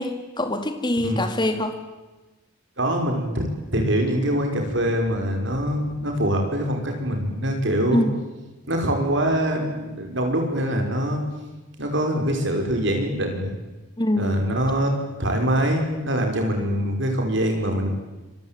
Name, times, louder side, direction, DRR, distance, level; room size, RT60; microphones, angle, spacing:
voice 1, 0.0-1.8 7.9-8.2 14.0-14.4, left 1 dB, 20° left, 7 dB, 2.5 m, -24 dB
voice 2, 2.8-3.5 3.7-8.0 8.7-11.2 11.8-13.5 14.2-14.9 15.2-17.9, equal, 55° right, 4 dB, 5.7 m, -24 dB
27.0 x 23.0 x 9.2 m, 1.2 s
head